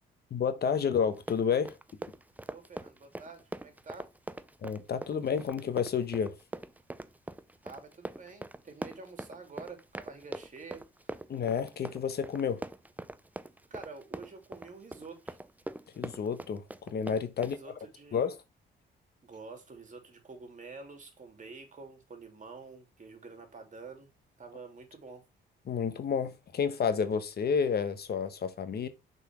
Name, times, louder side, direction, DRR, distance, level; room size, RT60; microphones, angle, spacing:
voice 1, 0.3-1.7 4.6-6.3 11.3-12.6 16.0-17.6 18.1-18.4 25.7-28.9, left 6 dB, 55° left, 1.2 m, -30 dB
Run, 1.1-17.6, right 2 dB, 10° right, 0.6 m, -42 dB
voice 2, 2.5-4.1 7.6-11.1 13.7-15.4 17.4-18.3 19.2-24.1 24.4-25.2, right 4 dB, 40° right, 3.1 m, -48 dB
6.8 x 4.4 x 6.1 m
cardioid pair, 90°, 20 cm